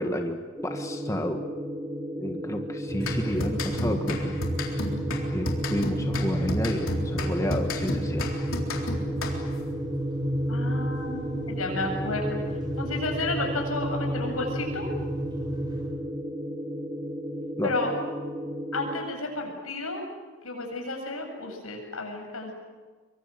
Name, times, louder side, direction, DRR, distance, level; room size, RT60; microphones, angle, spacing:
voice 1, 0.0-1.4 2.2-4.3 5.3-8.3 17.6-17.7, equal, 15° left, 4 dB, 1.6 m, -31 dB
sound 1, 0.6-19.0, equal, 5° right, 2.6 m, -35 dB
sound 2, 2.9-15.9, right 1 dB, 20° right, 6.7 m, -33 dB
sound 3, 3.0-9.7, left 1 dB, 70° left, 3.8 m, -32 dB
voice 2, 10.5-12.4 12.8-14.9 17.6-17.9 18.7-20.0 20.4-22.5, left 2 dB, 85° left, 2 dB, 8.0 m, -32 dB
25.5 x 24.0 x 7.9 m, 1.4 s
head